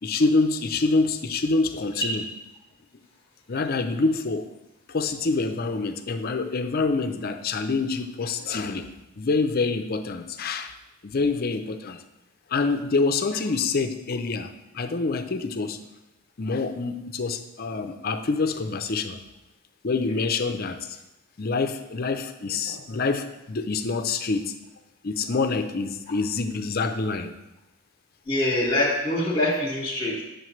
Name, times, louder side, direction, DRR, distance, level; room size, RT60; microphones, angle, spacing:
voice 1, 0.0-2.2 3.5-4.5 4.9-8.9 9.2-10.7 11.0-12.0 12.5-15.8 16.4-19.2 19.8-21.0 21.4-24.5 25.0-27.3, left 3 dB, 45° left, 8 dB, 0.5 m, -26 dB
voice 2, 28.2-30.2, left 1 dB, 25° left, -4 dB, 1.2 m, -24 dB
9.1 x 6.5 x 3.1 m, 0.98 s
head